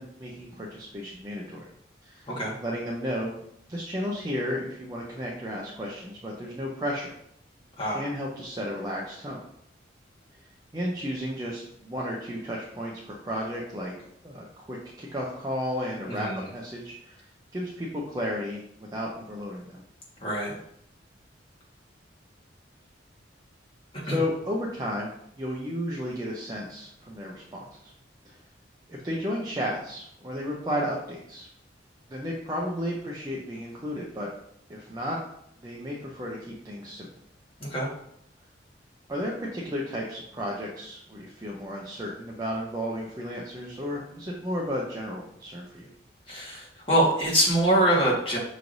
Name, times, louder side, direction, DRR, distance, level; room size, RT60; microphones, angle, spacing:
voice 1, 0.0-1.7 2.0-2.3 2.6-3.3 3.7-7.1 7.9-9.4 10.7-17.3 17.5-18.6 18.9-19.8 24.0-25.1 25.4-27.9 28.2-28.4 28.9-31.5 32.1-34.3 34.7-35.2 35.6-37.1 39.1-45.9, equal, 20° right, -3 dB, 0.5 m, -33 dB
voice 2, 16.1-16.5 20.2-20.6 24.1-24.2 37.6-37.9 46.3-48.4, right 1 dB, 30° left, -5 dB, 1.5 m, -24 dB
5.8 x 3.2 x 2.6 m, 0.72 s
head